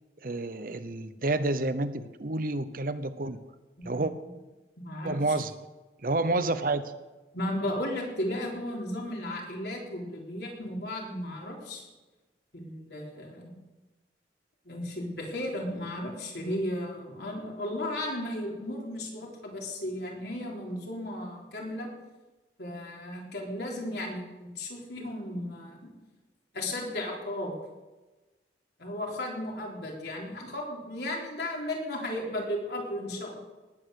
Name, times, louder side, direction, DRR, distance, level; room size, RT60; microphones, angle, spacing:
voice 1, 0.2-3.4 3.8-4.1 5.0-5.5 6.0-6.8, right 2 dB, 50° right, 12 dB, 0.8 m, -29 dB
voice 2, 4.8-5.2 7.3-11.8 12.5-13.6 14.7-21.9 22.6-25.9 26.5-27.5 28.8-33.3, left 1 dB, 65° left, -1 dB, 3.7 m, -35 dB
19.0 x 8.8 x 6.6 m, 1.2 s
head